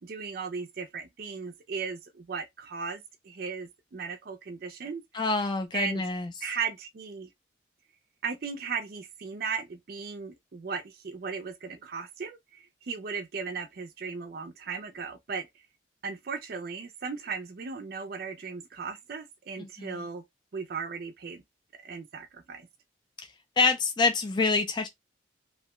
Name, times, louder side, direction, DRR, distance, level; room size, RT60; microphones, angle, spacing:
voice 1, 0.0-5.0 5.7-6.0 6.4-7.3 8.2-15.6 16.0-20.2 20.5-21.4 21.8-22.7, right 5 dB, 55° right, 0.4 m, -37 dB
voice 2, 5.1-6.3 19.8-19.9 23.6-24.9, left 4 dB, 25° left, 0.3 m, -26 dB
2.7 x 2.1 x 2.9 m
head